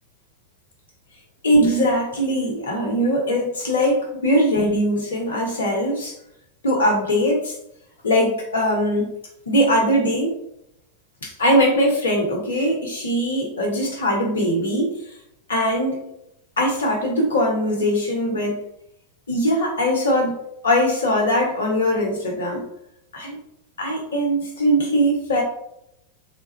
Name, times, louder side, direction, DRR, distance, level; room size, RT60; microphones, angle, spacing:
voice 1, 1.4-6.1 6.6-7.5 8.0-9.1 9.5-10.3 11.2-14.9 15.5-16.1 16.6-18.6 19.3-20.4 20.6-22.6 23.1-23.4 23.8-25.4, equal, 65° left, 0 dB, 1.2 m, -21 dB
3.7 x 2.5 x 4.3 m, 0.78 s
figure-of-eight pair, 90°, 0 cm